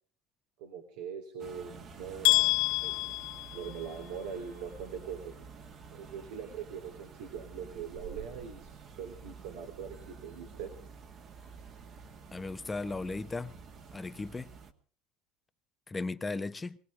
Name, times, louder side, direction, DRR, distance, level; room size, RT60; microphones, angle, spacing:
voice 1, 0.6-2.5 2.8-3.2 3.5-5.3 5.9-10.7, right 7 dB, 75° right, 3.3 m, -42 dB
sound 1, 1.4-14.7, right 5 dB, 40° right, 2.1 m, -49 dB
sound 2, 2.2-4.2, left 22 dB, 75° left, 1.8 m, -28 dB
voice 2, 12.3-13.6 13.9-14.5 15.9-16.8, left 3 dB, 15° left, 0.9 m, -36 dB
23.0 x 17.0 x 3.7 m
supercardioid pair, 115°, 0 cm